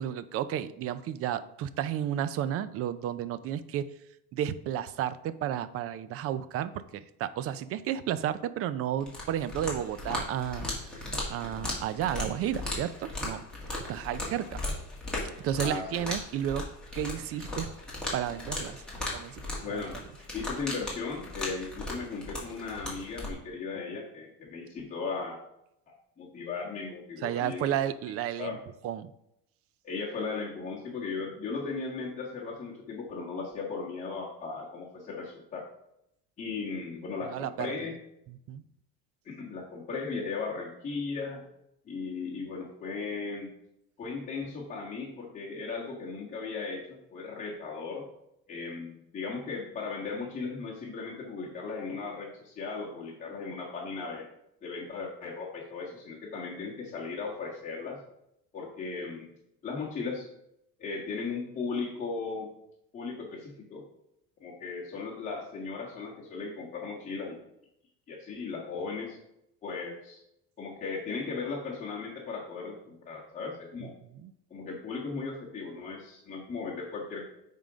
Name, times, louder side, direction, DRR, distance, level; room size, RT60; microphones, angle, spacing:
voice 1, 0.0-3.9 4.3-13.4 13.7-14.6 15.4-16.7 16.9-17.7 18.1-19.4 19.7-19.8 23.7-23.8 27.2-28.6 28.8-29.1 37.2-37.8 38.3-38.6 73.8-74.3, right 10 dB, 45° right, 14 dB, 0.5 m, -32 dB
sound 1, 9.0-23.3, left 2 dB, 5° left, 2.0 m, -37 dB
voice 2, 15.6-16.0 19.6-20.0 20.3-25.4 25.9-27.7 28.4-28.6 29.8-35.7 36.4-37.9 39.2-41.4 41.8-43.5 44.0-48.1 48.5-54.3 54.6-58.0 58.5-59.3 59.6-60.3 60.8-62.5 62.9-63.8 64.4-67.4 68.1-69.2 69.6-70.2 70.6-73.9 74.5-77.3, left 4 dB, 25° left, -6 dB, 1.5 m, -37 dB
9.0 x 3.7 x 5.1 m, 0.80 s
cardioid pair, 140°, 31 cm